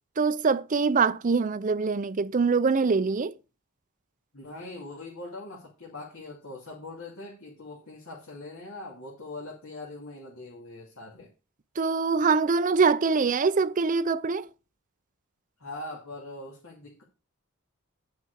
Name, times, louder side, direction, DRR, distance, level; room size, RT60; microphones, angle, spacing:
voice 1, 0.2-3.3 11.8-14.5, right 4 dB, 35° right, 0.5 m, -24 dB
voice 2, 4.3-11.3 15.6-17.0, left 2 dB, 70° left, 2.5 m, -42 dB
10.5 x 5.9 x 4.7 m
head